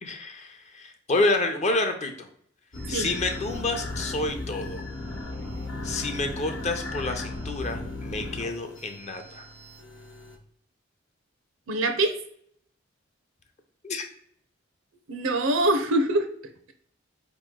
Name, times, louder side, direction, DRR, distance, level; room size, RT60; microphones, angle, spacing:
voice 1, 0.0-2.3 2.9-4.8 5.8-9.4 13.8-14.0, left 2 dB, 35° left, 5 dB, 0.6 m, -29 dB
sound 1, 2.7-10.4, left 2 dB, 65° left, 1.0 m, -36 dB
voice 2, 11.7-12.1 15.1-16.3, right 2 dB, 75° right, 7 dB, 0.6 m, -23 dB
4.5 x 3.0 x 3.7 m, 0.63 s
head